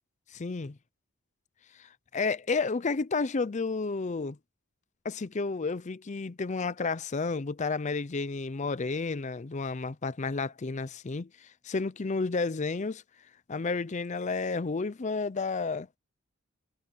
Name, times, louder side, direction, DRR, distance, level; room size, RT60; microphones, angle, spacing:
voice 1, 0.3-0.8 1.8-4.4 5.0-13.0 13.5-15.9, left 4 dB, 35° left, 0.5 m, -31 dB
head